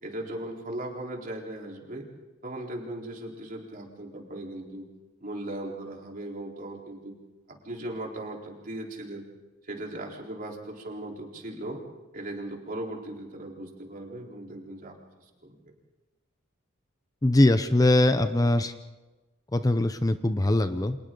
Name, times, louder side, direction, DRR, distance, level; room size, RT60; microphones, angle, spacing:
voice 1, 0.0-2.1 2.4-4.8 5.2-7.2 7.5-9.2 9.6-11.8 12.1-15.7, right 1 dB, 45° right, 0 dB, 4.0 m, -38 dB
voice 2, 17.2-18.7 19.5-21.0, left 1 dB, 20° left, 10 dB, 0.7 m, -22 dB
29.5 x 26.5 x 3.9 m, 1.2 s
head